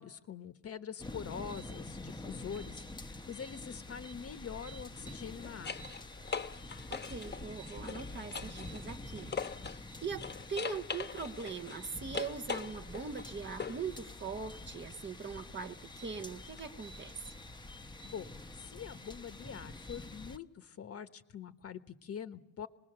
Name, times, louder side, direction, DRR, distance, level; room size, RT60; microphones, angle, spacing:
voice 1, 0.0-5.8 18.1-22.7, left 7 dB, 50° left, 10 dB, 1.2 m, -44 dB
sound 1, 1.0-20.4, left 2 dB, 15° left, 1.0 m, -47 dB
sound 2, 2.4-2.6 4.9-9.9 10.2-13.9 16.6-16.7, left 6 dB, 35° left, 1.2 m, -42 dB
voice 2, 6.9-9.3 10.0-10.2 10.5-17.2, right 5 dB, 35° right, 4 dB, 1.4 m, -41 dB
26.0 x 20.0 x 6.8 m, 0.88 s
cardioid pair, 90°, 30 cm